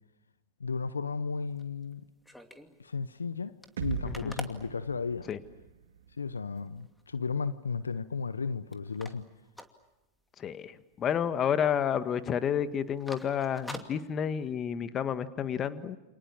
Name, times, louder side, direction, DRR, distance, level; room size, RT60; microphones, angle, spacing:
voice 1, 0.6-2.0 2.8-3.5 3.8-5.3 6.2-9.3, left 5 dB, 85° left, 0.9 m, -34 dB
sound 1, 1.4-2.8 3.2-3.3 3.5-5.6 6.1-6.2 6.6-7.0 7.4-8.4 8.7-10.5 10.8-11.0 11.3-11.8 12.0-12.2 12.7-14.7, equal, 5° left, 2.6 m, -47 dB
sound 2, 3.8-7.7, right 8 dB, 70° right, 2.2 m, -41 dB
voice 2, 10.4-16.0, left 8 dB, 30° left, 1.7 m, -30 dB
29.0 x 28.0 x 7.2 m
figure-of-eight pair, 90°, 0 cm